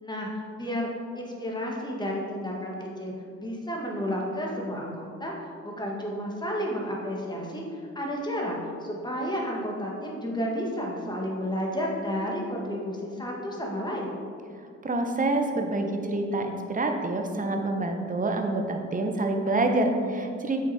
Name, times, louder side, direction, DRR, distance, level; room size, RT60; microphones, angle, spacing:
voice 1, 0.0-0.9 1.2-14.1, equal, 15° left, -2 dB, 1.8 m, -32 dB
voice 2, 14.8-20.6, right 2 dB, 25° right, 4 dB, 1.0 m, -27 dB
8.0 x 6.6 x 4.3 m, 2.3 s
cardioid pair, 90°, 30 cm